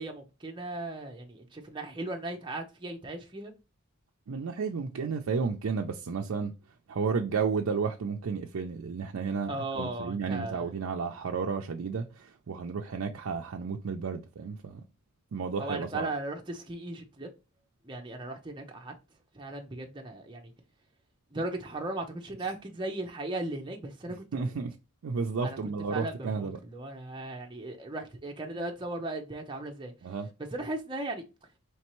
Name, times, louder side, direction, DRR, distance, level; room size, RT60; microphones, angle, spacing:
voice 1, 0.0-3.5 9.5-10.7 15.6-17.3 17.8-18.9 19.3-20.5 21.3-24.6 25.4-25.6 25.9-29.9 30.5-31.2, right 2 dB, 20° right, 0.6 m, -37 dB
voice 2, 4.3-6.5 6.9-14.8 15.3-16.1 24.3-24.7 25.0-26.6 30.0-30.3, right 5 dB, 85° right, 0.5 m, -32 dB
4.3 x 3.2 x 3.0 m
head